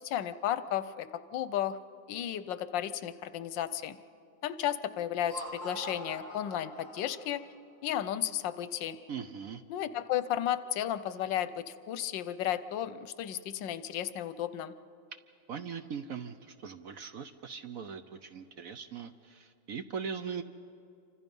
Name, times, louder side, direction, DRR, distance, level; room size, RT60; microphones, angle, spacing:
voice 1, 0.0-1.8 2.1-4.0 4.4-7.4 7.8-9.0 9.7-14.7, left 11 dB, 80° left, 14 dB, 1.4 m, -33 dB
Laughter, 5.1-7.4, equal, 40° right, 3.6 m, -44 dB
voice 2, 9.1-9.6 15.5-20.4, right 6 dB, 60° right, 9 dB, 1.0 m, -40 dB
27.5 x 25.0 x 5.4 m, 2.6 s
omnidirectional pair, 2.0 m